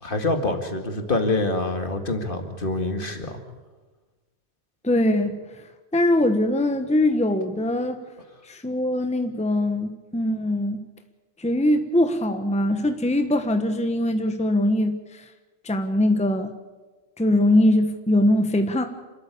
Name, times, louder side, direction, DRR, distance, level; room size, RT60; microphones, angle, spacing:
voice 1, 0.0-3.4, left 2 dB, 55° left, 5 dB, 2.3 m, -26 dB
voice 2, 4.8-5.3 5.9-8.0 8.5-10.8 11.4-15.0 15.6-16.5 17.2-18.8, left 1 dB, 5° left, 7 dB, 1.1 m, -22 dB
28.0 x 13.0 x 8.4 m, 1.3 s
omnidirectional pair, 1.1 m